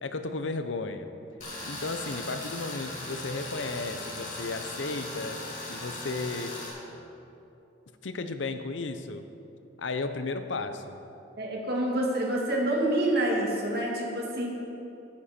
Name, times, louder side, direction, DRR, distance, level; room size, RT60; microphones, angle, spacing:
voice 1, 0.0-1.1 1.6-6.6 8.0-9.3 9.8-11.0, left 3 dB, 85° left, 9 dB, 0.8 m, -34 dB
Tools, 1.4-6.7, left 2 dB, 45° left, 3.2 m, -38 dB
voice 2, 11.4-14.5, right 1 dB, 60° right, -2 dB, 2.4 m, -27 dB
15.0 x 9.8 x 4.4 m, 2.9 s
head